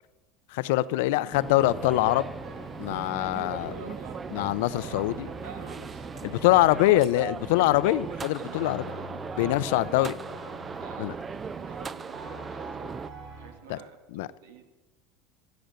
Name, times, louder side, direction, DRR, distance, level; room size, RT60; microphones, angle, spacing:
voice 1, 0.5-2.3 2.8-3.7 4.3-5.3 6.2-8.8 9.4-10.1 11.0-11.1 13.7-13.8 14.1-14.3, left 16 dB, 80° left, 17 dB, 0.5 m, -24 dB
sound 1, 1.3-13.1, right 5 dB, 25° right, 0.4 m, -39 dB
sound 2, 1.5-13.5, right 1 dB, 70° right, 4.7 m, -45 dB
voice 2, 3.6-4.4 4.8-7.0 8.1-10.1 10.8-12.9 13.4-14.7, right 5 dB, 90° right, 7 dB, 1.9 m, -47 dB
15.5 x 7.9 x 6.6 m, 1.1 s
supercardioid pair, 105°, 0 cm